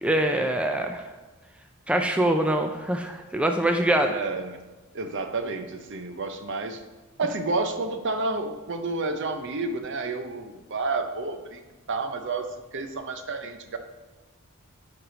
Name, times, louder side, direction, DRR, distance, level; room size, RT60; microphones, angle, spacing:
voice 1, 0.0-1.0 1.9-4.1, right 1 dB, 5° right, 4 dB, 0.4 m, -24 dB
voice 2, 3.9-4.6 4.9-6.8 7.2-11.6 11.9-13.8, right 3 dB, 55° right, 7 dB, 0.7 m, -30 dB
7.5 x 4.8 x 5.1 m, 1.2 s
head